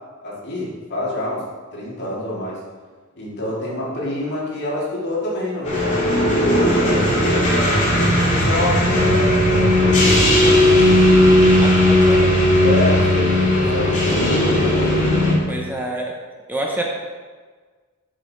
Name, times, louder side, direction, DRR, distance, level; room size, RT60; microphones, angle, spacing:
voice 1, 0.2-1.4 1.7-2.6 3.2-10.6 12.6-14.3, left 1 dB, 55° left, -6 dB, 2.7 m, -27 dB
sound 1, 5.7-15.3, left 1 dB, 35° left, 2.5 m, -16 dB
voice 2, 11.6-12.3 15.5-16.2 16.5-16.8, right 1 dB, 10° right, -1 dB, 0.8 m, -27 dB
7.4 x 6.8 x 4.9 m, 1.5 s
head